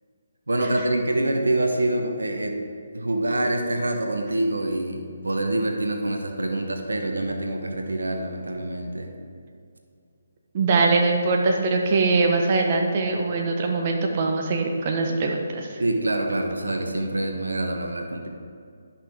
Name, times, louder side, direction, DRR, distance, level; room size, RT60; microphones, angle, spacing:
voice 1, 0.5-2.6 2.9-9.1 15.8-18.3, right 1 dB, 85° right, 4 dB, 1.1 m, -26 dB
voice 2, 10.5-15.8, right 3 dB, 40° right, 1 dB, 1.0 m, -22 dB
12.0 x 5.8 x 3.6 m, 2.4 s
figure-of-eight pair, 150°, 0 cm